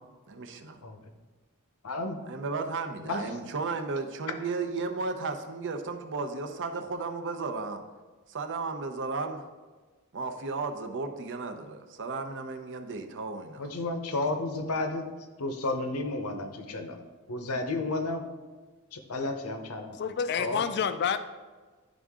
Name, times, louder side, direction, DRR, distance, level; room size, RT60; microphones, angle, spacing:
voice 1, 0.3-0.8 2.3-7.8 8.3-9.5 10.1-13.7, right 4 dB, 55° right, 6 dB, 0.7 m, -34 dB
voice 2, 1.8-2.2 3.1-3.2 13.6-15.1 15.4-17.0 17.3-18.3 18.9-20.0 20.4-20.6, left 2 dB, 80° left, 6 dB, 0.8 m, -32 dB
voice 3, 19.9-21.2, left 7 dB, 50° left, 10 dB, 0.4 m, -28 dB
11.0 x 3.7 x 3.6 m, 1.3 s
head